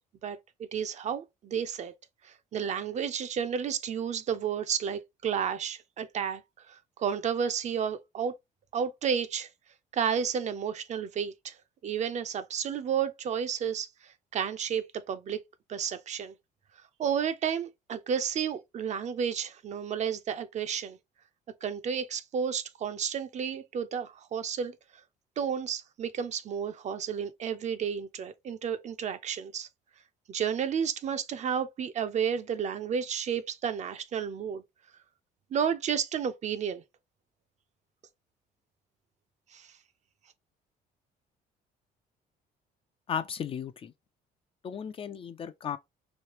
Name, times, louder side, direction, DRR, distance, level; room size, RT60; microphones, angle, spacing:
voice 1, 0.2-1.9 2.2-6.4 6.7-8.3 8.7-9.5 9.9-11.5 11.8-15.4 15.7-16.3 17.0-21.0 21.6-24.7 25.4-29.7 30.3-34.6 35.5-36.8 39.5-39.7, right 7 dB, 45° right, 0.5 m, -32 dB
voice 2, 43.1-43.9 44.6-45.8, left 7 dB, 35° left, 0.3 m, -35 dB
3.1 x 2.8 x 2.9 m
cardioid pair, 110°, 17 cm